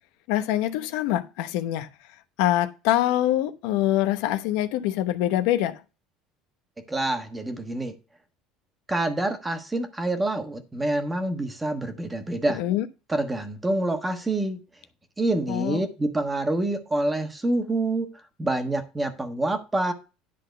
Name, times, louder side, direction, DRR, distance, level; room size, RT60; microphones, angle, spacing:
voice 1, 0.3-1.9 2.4-5.8 12.6-12.9 15.5-15.8, left 13 dB, 75° left, 0.8 m, -24 dB
voice 2, 6.9-7.9 8.9-12.6 13.1-14.6 15.2-18.1 18.4-19.9, right 2 dB, 10° right, 1.3 m, -27 dB
10.5 x 3.9 x 6.5 m
cardioid pair, 155°, 0 cm